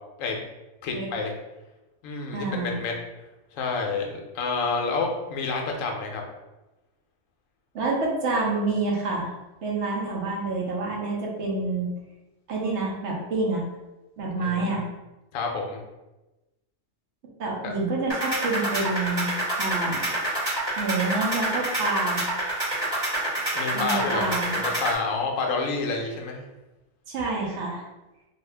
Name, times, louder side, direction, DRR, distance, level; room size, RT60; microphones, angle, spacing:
voice 1, 0.8-1.3 2.0-2.9 3.5-4.1 4.3-6.2 14.4-14.8 15.3-15.8 17.6-17.8 23.5-26.4, left 4 dB, 70° left, 1 dB, 0.9 m, -29 dB
voice 2, 2.3-2.8 7.7-9.3 9.6-11.9 12.5-13.6 14.2-14.9 17.4-19.3 19.6-20.1 20.8-22.3 23.7-24.6 27.1-27.8, right 3 dB, 60° right, -2 dB, 0.9 m, -27 dB
sound 1, 18.1-24.9, right 1 dB, 20° right, 1.0 m, -28 dB
2.7 x 2.4 x 3.2 m, 1.0 s
omnidirectional pair, 1.5 m